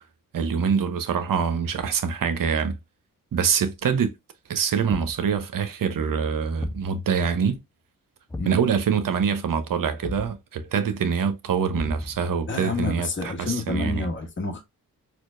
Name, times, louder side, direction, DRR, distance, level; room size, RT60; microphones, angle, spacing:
voice 1, 0.3-2.8 3.3-4.1 4.5-7.6 8.4-14.1, right 6 dB, 55° right, 0.8 m, -25 dB
Thump thud, 4.9-5.3 6.6-6.9 8.3-8.7 10.0-10.4 11.7-12.3, left 2 dB, 10° left, 0.5 m, -35 dB
voice 2, 12.5-14.6, left 3 dB, 30° left, 1.2 m, -29 dB
4.3 x 2.4 x 2.5 m
supercardioid pair, 50°, 40 cm